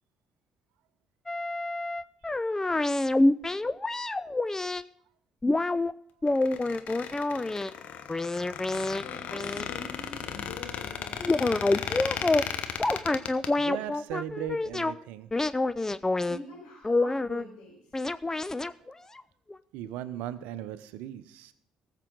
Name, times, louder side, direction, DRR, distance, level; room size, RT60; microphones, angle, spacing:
sound 1, 1.3-4.8 5.4-5.9 6.2-7.7 8.1-9.0 9.3-9.7 11.2-12.4 12.8-14.9 15.3-16.4 16.8-17.4 17.9-19.2 19.5-19.6, left 2 dB, 20° left, 0.6 m, -27 dB
Squeak, 6.3-13.5, left 8 dB, 60° left, 1.0 m, -36 dB
voice 1, 9.0-12.4 16.3-18.0, left 3 dB, 80° left, -7 dB, 4.6 m, -45 dB
voice 2, 13.6-15.3 18.8-19.1 19.7-21.5, right 11 dB, 75° right, 14 dB, 0.7 m, -38 dB
19.0 x 7.5 x 3.9 m, 0.66 s
hypercardioid pair, 50°, 3 cm